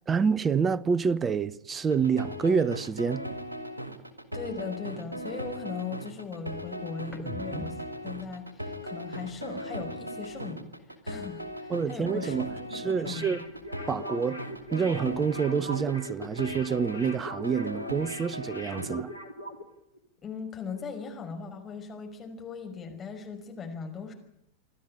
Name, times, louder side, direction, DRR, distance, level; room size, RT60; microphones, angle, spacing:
voice 1, 0.1-3.3 11.7-13.4 13.9-14.4 14.7-19.1, right 6 dB, 20° right, 0.9 m, -27 dB
sound 1, 1.8-18.9, equal, 80° right, 2.5 m, -38 dB
voice 2, 4.3-10.7 11.0-13.4 20.2-24.1, left 5 dB, 20° left, 5.6 m, -39 dB
sound 2, 7.1-10.7 11.0-12.8 13.1-14.9 15.3-17.2, left 1 dB, 5° left, 3.8 m, -49 dB
sound 3, 13.0-19.7 19.9-20.1, equal, 80° left, 2.9 m, -41 dB
28.5 x 12.5 x 9.9 m
figure-of-eight pair, 90°, 0 cm